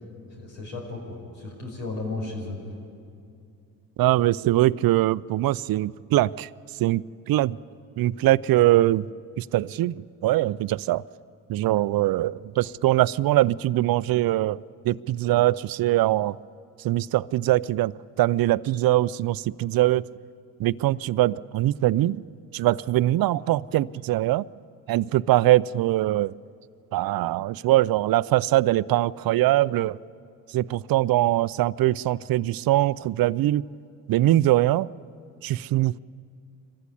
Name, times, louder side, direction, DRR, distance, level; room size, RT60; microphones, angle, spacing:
voice 1, 0.4-2.6, left 2 dB, 90° left, -1 dB, 5.4 m, -34 dB
voice 2, 4.0-6.5 6.8-7.6 8.0-9.1 9.4-11.0 11.5-14.6 14.8-16.4 16.8-20.1 20.6-22.2 22.5-24.5 24.9-26.3 26.9-30.0 30.5-33.7 34.1-34.9 35.4-36.0, right 15 dB, 55° right, 19 dB, 0.6 m, -22 dB
24.5 x 15.0 x 9.9 m, 2.5 s
supercardioid pair, 60°, 42 cm